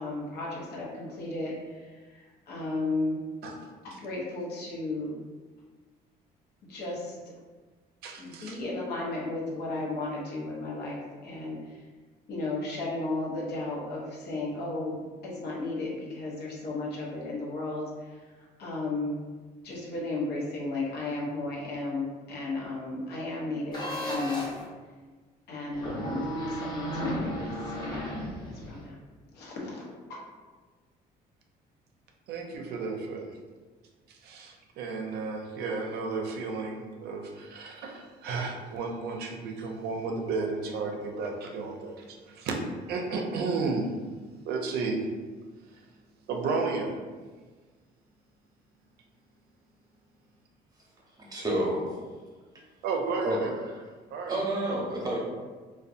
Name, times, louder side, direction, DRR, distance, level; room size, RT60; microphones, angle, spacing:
voice 1, 0.0-3.2 3.8-5.2 6.7-7.2 8.2-11.7 12.3-18.2 18.6-19.2 19.6-24.5 25.5-28.1 28.4-29.0 29.3-30.2, left 2 dB, 75° left, -3 dB, 0.7 m, -34 dB
voice 2, 8.0-8.6 32.3-33.3 34.1-42.6 42.9-43.9 44.4-45.0 46.3-46.9 52.8-53.5 54.1-54.3, right 4 dB, 70° right, 2 dB, 0.4 m, -33 dB
sound 1, 23.7-24.6 25.7-28.8, equal, 25° left, 0.8 m, -34 dB
voice 3, 51.2-52.0 53.2-53.4 53.7-53.8 54.3-55.2, right 1 dB, 20° right, -4 dB, 0.8 m, -29 dB
2.6 x 2.2 x 2.4 m, 1.4 s
cardioid pair, 110°, 17 cm